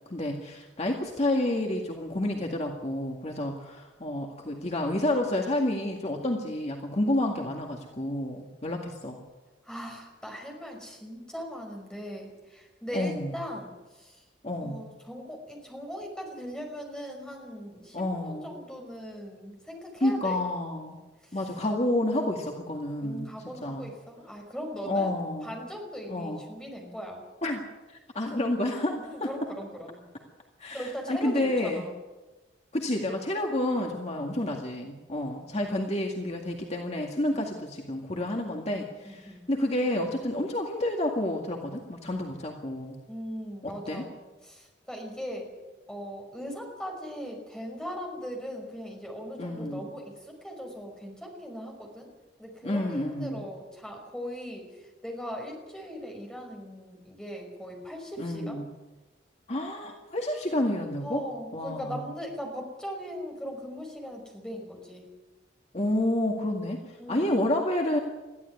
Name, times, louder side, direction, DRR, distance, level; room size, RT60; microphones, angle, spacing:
voice 1, 0.1-9.2 12.9-13.3 14.4-14.8 17.9-18.5 20.0-21.0 21.3-23.3 23.6-23.9 24.9-25.6 26.1-26.4 27.4-29.5 30.6-31.9 32.7-43.0 43.6-44.0 49.4-49.8 52.6-53.4 58.2-58.7 59.5-61.2 61.5-62.0 65.7-68.0, left 1 dB, 35° left, 1 dB, 2.1 m, -29 dB
voice 2, 9.6-14.2 14.6-20.4 21.3-21.4 23.0-27.2 29.0-30.0 30.7-31.9 35.5-35.7 38.4-39.4 43.1-44.2 44.4-45.5 45.9-52.1 52.4-54.7 55.0-58.6 61.0-65.1 67.0-67.5, equal, 5° left, 1 dB, 5.4 m, -39 dB
21.5 x 14.5 x 9.5 m, 1.2 s
head